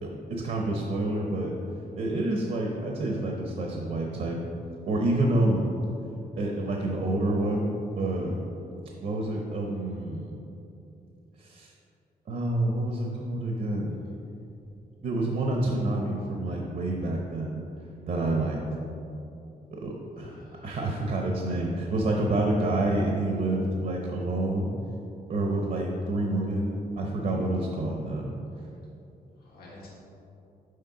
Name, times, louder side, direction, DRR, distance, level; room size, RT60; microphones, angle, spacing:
voice 1, 0.0-1.5 2.0-4.4 4.9-5.7 6.4-7.7 8.0-8.4 9.0-10.4 11.4-11.7 12.3-14.0 15.0-17.6 18.1-18.6 19.7-24.7 25.3-28.3, right 2 dB, 60° right, 0 dB, 0.8 m, -28 dB
voice 2, 20.1-21.0 29.4-29.9, left 1 dB, 85° left, -6 dB, 1.7 m, -51 dB
6.5 x 4.3 x 5.7 m, 2.7 s
wide cardioid pair, 155°, 16 cm